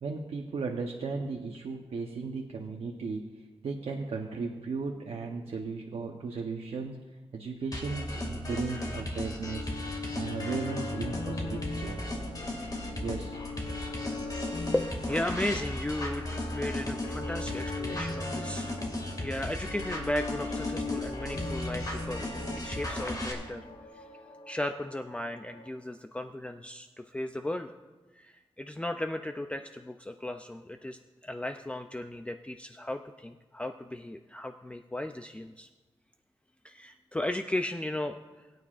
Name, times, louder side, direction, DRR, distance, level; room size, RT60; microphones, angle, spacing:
voice 1, 0.0-7.0 7.3-9.7 10.2-12.1 13.0-13.4, right 4 dB, 85° right, 1 dB, 0.8 m, -36 dB
sound 1, 7.7-23.3, left 1 dB, 40° left, 2.1 m, -36 dB
sound 2, 9.3-25.7, left 3 dB, 70° left, 1.2 m, -40 dB
voice 2, 14.7-18.9 19.2-22.3 22.6-23.6 23.9-24.0 24.5-27.7 28.2-35.7 36.6-38.2, left 1 dB, 10° left, 6 dB, 0.4 m, -35 dB
22.0 x 9.3 x 2.5 m, 1.2 s
wide cardioid pair, 105°, 10 cm